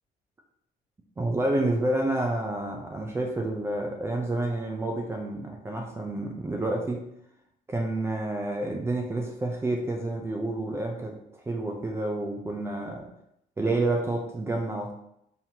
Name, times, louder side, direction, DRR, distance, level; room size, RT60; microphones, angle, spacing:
voice 1, 1.2-7.0 7.7-13.1 13.6-14.9, right 2 dB, 15° right, 1 dB, 0.5 m, -29 dB
4.0 x 3.0 x 2.8 m, 0.78 s
cardioid pair, 110°, 17 cm